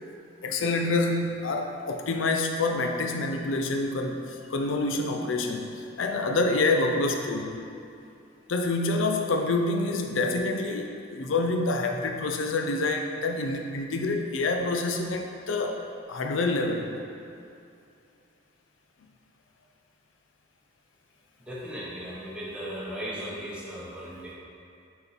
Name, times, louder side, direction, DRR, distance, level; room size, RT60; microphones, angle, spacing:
voice 1, 0.4-7.7 8.5-15.8 16.1-16.9, left 2 dB, 80° left, 4 dB, 0.5 m, -27 dB
voice 2, 21.5-24.3, equal, 5° right, -7 dB, 1.0 m, -37 dB
5.4 x 4.3 x 4.0 m, 2.6 s
head